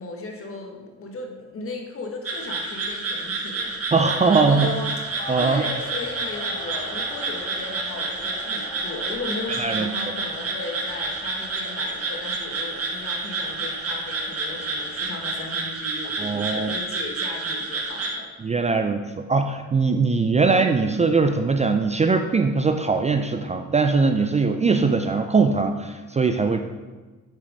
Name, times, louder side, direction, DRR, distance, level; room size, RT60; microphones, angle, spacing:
voice 1, 0.0-3.9 4.3-4.9 5.4-18.3, left 3 dB, 45° left, 2 dB, 1.5 m, -36 dB
sound 1, 2.2-18.1, right 3 dB, 50° right, 1.5 m, -29 dB
voice 2, 3.9-4.7 5.3-5.6 9.6-10.1 16.2-16.7 18.4-26.6, right 4 dB, 25° right, 7 dB, 0.4 m, -21 dB
sound 2, 4.6-15.4, left 1 dB, 25° left, 2.2 m, -42 dB
7.6 x 4.5 x 5.2 m, 1.3 s
cardioid pair, 90°, 30 cm